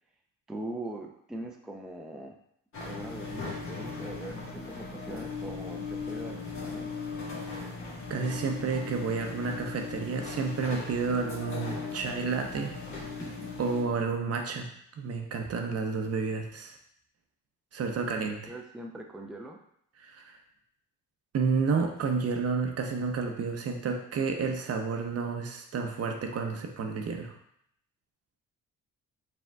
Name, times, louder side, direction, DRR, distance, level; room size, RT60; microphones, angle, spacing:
voice 1, 0.5-2.4 2.8-6.9 13.2-13.5 18.5-19.6, right 1 dB, ahead, 2 dB, 0.4 m, -41 dB
sound 1, 2.7-13.8, left 4 dB, 45° left, 1.5 m, -38 dB
voice 2, 8.1-12.8 13.6-14.7 15.0-16.8 17.7-18.4 20.0-20.4 21.3-27.3, right 4 dB, 55° right, 4 dB, 0.7 m, -30 dB
4.8 x 3.5 x 2.3 m, 0.70 s
cardioid pair, 90°, 30 cm